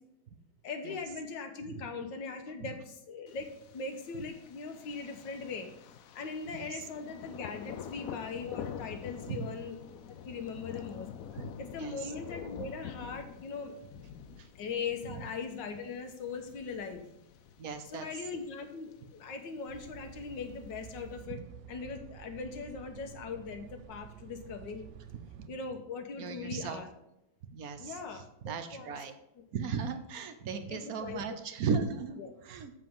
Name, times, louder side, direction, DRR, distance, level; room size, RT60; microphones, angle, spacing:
voice 1, 0.6-5.7 6.1-11.1 11.6-13.8 14.6-17.0 17.9-21.4 21.7-24.9 25.5-26.9 27.8-28.9 30.7-31.2 32.2-32.3, left 5 dB, 70° left, 6 dB, 1.7 m, -40 dB
Thunder, 3.3-21.2, left 8 dB, 90° left, 0.7 m, -47 dB
voice 2, 11.8-12.1 14.4-14.5 15.0-15.2 17.6-18.1 21.3-21.4 25.4-25.5 26.2-26.8 27.5-29.1 29.5-32.7, right 6 dB, 60° right, 9 dB, 1.0 m, -37 dB
sound 1, 19.7-25.5, right 11 dB, 75° right, 1.2 m, -50 dB
7.7 x 7.5 x 3.7 m, 0.82 s
omnidirectional pair, 2.1 m